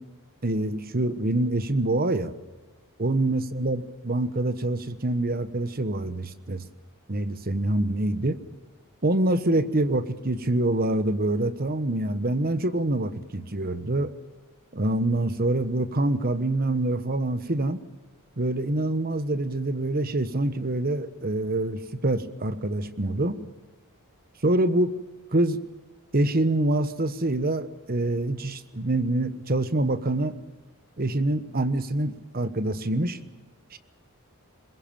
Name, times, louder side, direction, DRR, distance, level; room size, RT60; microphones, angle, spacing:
voice 1, 0.4-2.3 3.0-6.6 7.1-8.4 9.0-14.1 14.7-17.8 18.4-23.4 24.4-24.9 25.3-25.6 26.1-30.4 31.0-33.2 33.7-33.8, right 2 dB, 45° right, 11 dB, 1.2 m, -25 dB
22.5 x 21.5 x 7.3 m, 1.2 s
head